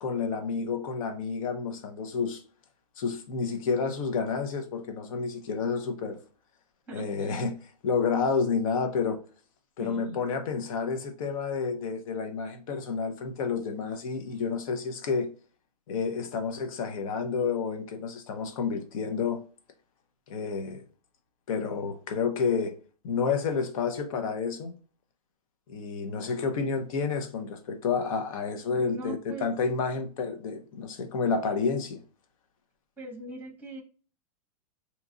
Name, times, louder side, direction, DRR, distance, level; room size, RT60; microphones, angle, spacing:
voice 1, 0.0-2.4 3.0-6.2 6.9-7.6 7.8-9.2 9.8-15.3 15.9-19.4 20.3-20.9 21.5-22.8 23.0-24.7 25.7-32.0, left 5 dB, 65° left, 0.8 m, -30 dB
voice 2, 6.9-7.4 9.8-10.2 28.8-29.5 33.0-33.8, right 1 dB, 10° right, 0.9 m, -41 dB
2.9 x 2.4 x 3.7 m
supercardioid pair, 150°, 19 cm